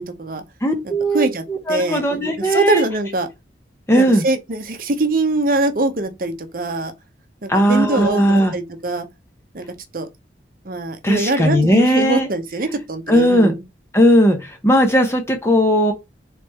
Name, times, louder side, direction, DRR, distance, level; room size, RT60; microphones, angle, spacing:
voice 1, 0.0-0.4 1.1-2.0 2.4-3.3 3.9-6.9 7.4-9.1 9.5-9.6 9.9-10.1 10.7-13.6, right 2 dB, 50° right, 0.7 m, -22 dB
voice 2, 0.6-2.8 3.9-4.2 7.5-8.5 11.0-12.3 13.1-13.5 13.9-15.9, equal, 15° left, 0.7 m, -17 dB
4.1 x 3.3 x 3.5 m
head